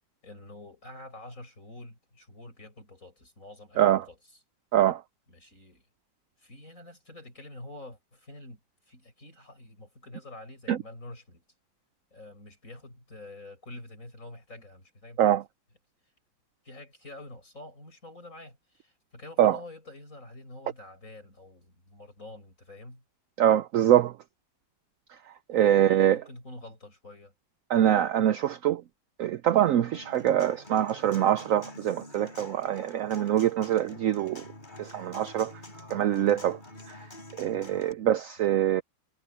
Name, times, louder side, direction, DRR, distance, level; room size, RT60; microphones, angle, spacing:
voice 1, 0.2-4.2 5.3-5.8 6.4-8.6 8.9-11.4 12.1-15.4 16.6-23.0 25.5-27.3 37.9-38.1 38.4-38.8, left 2 dB, 45° left, 7.7 m, -47 dB
voice 2, 23.4-24.1 25.5-26.2 27.7-28.8 29.2-34.4 34.8-35.5 35.9-36.6 37.4-38.8, right 11 dB, 75° right, 0.7 m, -24 dB
Human voice / Acoustic guitar, 29.9-37.9, left 1 dB, 25° left, 4.4 m, -47 dB
omnidirectional pair, 2.0 m